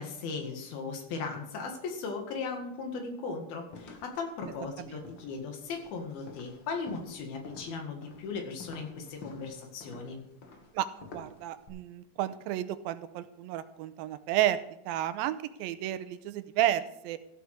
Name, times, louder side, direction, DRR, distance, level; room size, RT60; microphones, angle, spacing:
voice 1, 0.0-10.2, left 4 dB, 80° left, 4 dB, 3.7 m, -37 dB
sound 1, 3.7-11.7, left 3 dB, 55° left, 1.3 m, -50 dB
voice 2, 11.1-17.2, right 12 dB, 85° right, 12 dB, 2.4 m, -31 dB
14.5 x 8.0 x 4.9 m, 0.81 s
omnidirectional pair, 4.2 m